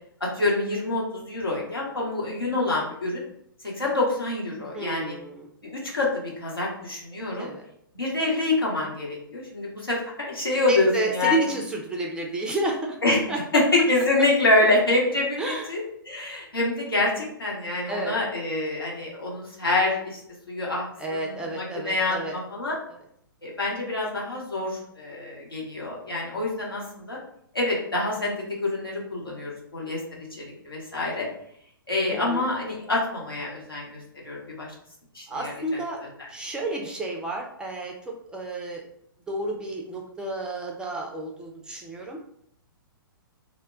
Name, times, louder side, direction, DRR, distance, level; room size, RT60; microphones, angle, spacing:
voice 1, 0.2-3.2 3.6-5.1 5.6-7.5 7.9-11.4 13.0-13.2 13.5-13.6 13.9-15.8 16.1-20.2 20.5-20.8 21.1-22.8 23.4-26.8 27.1-27.2 27.5-28.3 28.6-30.0 30.4-31.3 31.9-33.9 34.2-34.7 35.1-35.5 36.2-36.3, left 2 dB, 85° left, -3 dB, 1.0 m, -26 dB
voice 2, 4.7-5.5 7.4-7.6 10.7-13.0 13.3-13.4 14.7-14.8 15.4-15.8 17.9-18.2 21.0-22.4 32.1-32.5 35.3-36.0 36.3-38.8 39.3-42.2, right 2 dB, 5° right, 0 dB, 0.3 m, -31 dB
2.2 x 2.0 x 3.6 m, 0.70 s
figure-of-eight pair, 115°, 12 cm